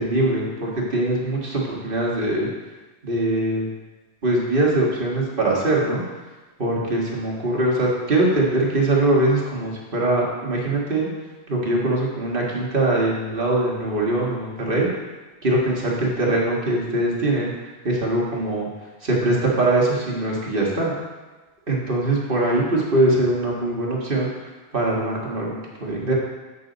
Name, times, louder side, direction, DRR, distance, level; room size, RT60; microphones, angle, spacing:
voice 1, 0.0-2.5 3.0-3.7 4.2-6.0 6.6-11.1 11.5-14.9 15.4-17.5 17.8-18.7 19.0-20.9 21.7-24.3 24.7-26.1, right 2 dB, 50° right, -3 dB, 1.7 m, -22 dB
7.7 x 6.7 x 3.9 m, 1.2 s
omnidirectional pair, 1.1 m